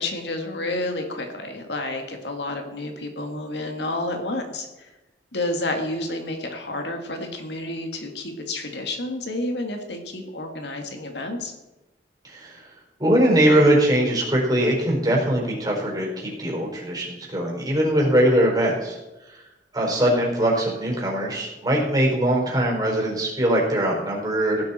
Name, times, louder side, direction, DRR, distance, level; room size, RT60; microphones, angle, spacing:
voice 1, 0.0-4.9 5.3-11.5, left 2 dB, 70° left, 4 dB, 2.1 m, -30 dB
voice 2, 12.3-12.6 13.0-19.0 19.7-24.6, right 1 dB, 25° right, -2 dB, 4.7 m, -21 dB
16.5 x 12.0 x 4.4 m, 1.0 s
head